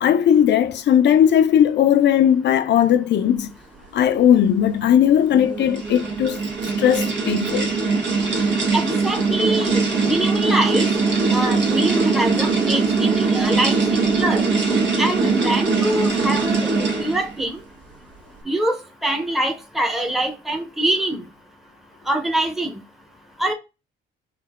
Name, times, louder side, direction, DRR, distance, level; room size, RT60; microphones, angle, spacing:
voice 1, 0.0-3.5 3.9-6.4 6.8-7.7, left 9 dB, 60° left, 0.6 m, -17 dB
sound 1, 5.2-17.4, right 4 dB, 65° right, 1.4 m, -21 dB
voice 2, 8.7-10.9 11.3-14.4 15.0-16.7 17.0-17.6 18.4-18.8 19.0-21.2 22.1-22.7 23.4-23.5, right 1 dB, ahead, 0.8 m, -24 dB
4.5 x 2.8 x 3.5 m
cardioid pair, 90°, 20 cm